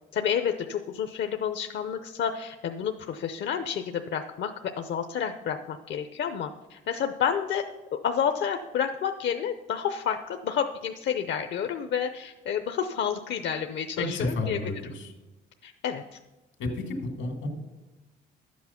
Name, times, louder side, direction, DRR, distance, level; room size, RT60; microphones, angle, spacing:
voice 1, 0.1-4.5 4.8-7.6 7.9-14.6 15.6-16.2, left 8 dB, 65° left, 7 dB, 0.7 m, -30 dB
voice 2, 14.0-15.1 16.6-17.5, left 2 dB, 85° left, 4 dB, 2.3 m, -31 dB
12.0 x 8.5 x 5.8 m, 1.1 s
cardioid pair, 90°, 20 cm